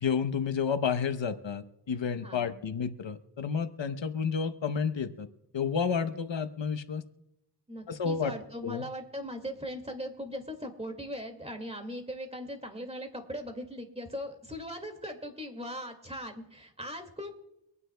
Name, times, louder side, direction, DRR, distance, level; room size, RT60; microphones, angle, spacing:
voice 1, 0.0-5.3 5.5-7.0 7.9-8.3 8.6-8.8, left 6 dB, 80° left, 9 dB, 0.9 m, -30 dB
voice 2, 2.2-2.5 7.7-17.4, equal, 15° right, 5 dB, 2.1 m, -39 dB
25.0 x 9.6 x 2.2 m, 0.88 s
wide cardioid pair, 65°, 44 cm